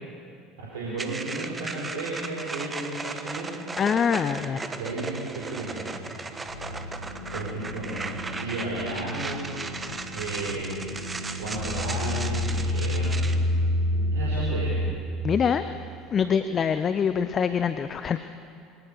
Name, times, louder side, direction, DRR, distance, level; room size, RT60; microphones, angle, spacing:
voice 1, 0.6-3.5 4.7-5.9 7.3-9.6 10.1-10.7 11.4-13.2 14.1-14.7, right 2 dB, 70° right, -5 dB, 4.3 m, -33 dB
sound 1, 1.0-13.4, right 3 dB, 20° right, 1.3 m, -36 dB
voice 2, 3.8-4.7 15.2-15.6 16.1-18.2, left 7 dB, 35° left, 12 dB, 0.6 m, -24 dB
sound 2, 4.2-14.5, right 3 dB, 50° right, 4.1 m, -45 dB
sound 3, 6.5-14.9, left 1 dB, 65° left, 2.1 m, -29 dB
24.0 x 18.0 x 6.7 m, 2.5 s
figure-of-eight pair, 65°, 0 cm